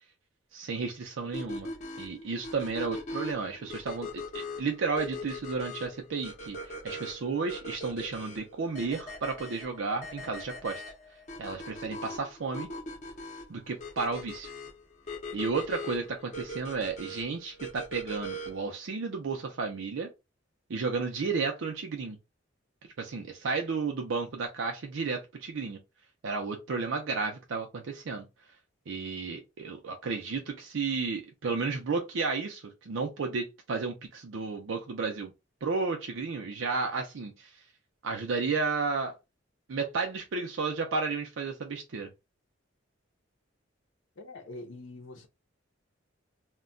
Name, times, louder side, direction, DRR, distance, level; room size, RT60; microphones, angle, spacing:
voice 1, 0.5-1.7 2.0-10.8 11.4-12.7 13.5-14.5 15.3-20.1 20.7-22.2 23.0-25.8 26.2-28.2 28.9-35.3 35.6-37.5 38.0-39.1 39.7-42.1, right 4 dB, 85° right, 0.5 m, -32 dB
sound 1, 1.3-18.7, left 1 dB, 40° left, 0.6 m, -41 dB
voice 2, 44.2-45.3, left 2 dB, 75° left, 0.6 m, -44 dB
2.2 x 2.2 x 3.7 m
head